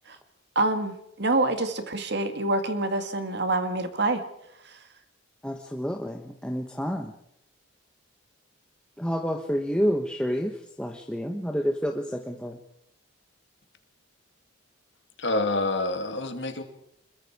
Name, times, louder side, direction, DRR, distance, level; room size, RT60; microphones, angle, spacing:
voice 1, 0.6-4.2, right 2 dB, 50° right, 8 dB, 1.9 m, -26 dB
voice 2, 5.4-7.1 9.0-10.5 10.8-12.5, equal, 5° left, 3 dB, 1.1 m, -29 dB
voice 3, 15.2-16.6, left 2 dB, 55° left, 6 dB, 2.5 m, -27 dB
26.5 x 22.0 x 4.8 m, 0.78 s
head